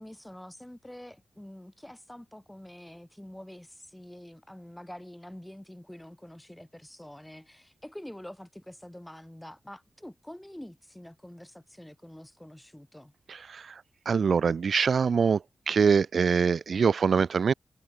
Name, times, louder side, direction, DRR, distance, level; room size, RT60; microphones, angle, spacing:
voice 1, 0.0-13.1, left 1 dB, 5° left, 7.6 m, -46 dB
voice 2, 13.3-13.7 14.1-15.4 15.7-17.5, right 6 dB, 55° right, 0.4 m, -24 dB
wide cardioid pair, 165°, 0 cm